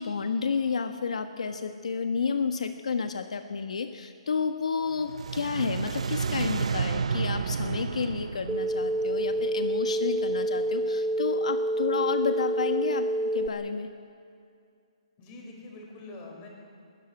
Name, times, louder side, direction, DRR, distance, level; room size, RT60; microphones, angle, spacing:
voice 1, 0.0-13.9, left 5 dB, 80° left, 6 dB, 1.4 m, -31 dB
sound 1, 4.9-10.1, right 5 dB, 70° right, 1.0 m, -32 dB
sound 2, 8.5-13.5, right 1 dB, 5° right, 0.6 m, -28 dB
voice 2, 15.2-16.5, left 2 dB, 20° left, 0 dB, 5.2 m, -44 dB
21.0 x 16.5 x 9.8 m, 2.3 s
hypercardioid pair, 170°, 4 cm